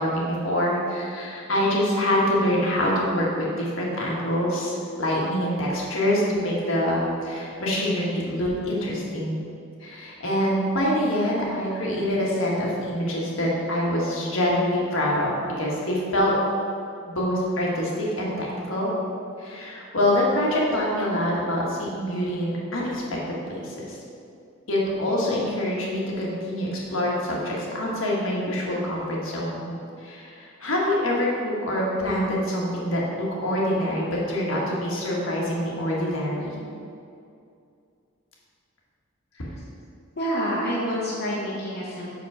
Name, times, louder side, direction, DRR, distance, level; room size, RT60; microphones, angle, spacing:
voice 1, 0.0-9.4 9.8-15.3 15.6-16.3 17.1-18.9 19.4-24.0 24.7-29.7 30.0-36.6, left 1 dB, 70° left, -4 dB, 1.6 m, -25 dB
voice 2, 40.2-42.2, equal, 50° left, -8 dB, 1.1 m, -27 dB
6.3 x 5.2 x 4.8 m, 2.5 s
head